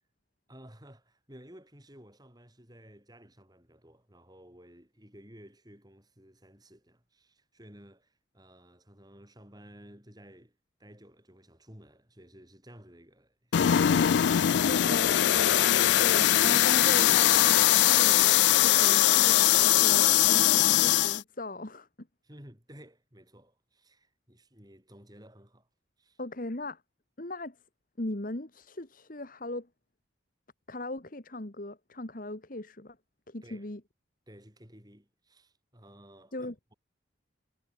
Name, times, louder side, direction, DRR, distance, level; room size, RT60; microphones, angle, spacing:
voice 1, 0.5-14.9 22.2-25.7 26.0-26.2 33.4-33.7 34.3-36.7, equal, 20° right, 6.4 m, -54 dB
sound 1, 13.5-21.2, left 12 dB, 60° left, 0.3 m, -21 dB
voice 2, 14.6-15.6 16.0-22.1 26.2-26.8 27.2-27.6 28.0-29.7 30.7-33.0 33.3-33.8 36.3-36.5, left 1 dB, 45° left, 1.6 m, -38 dB
head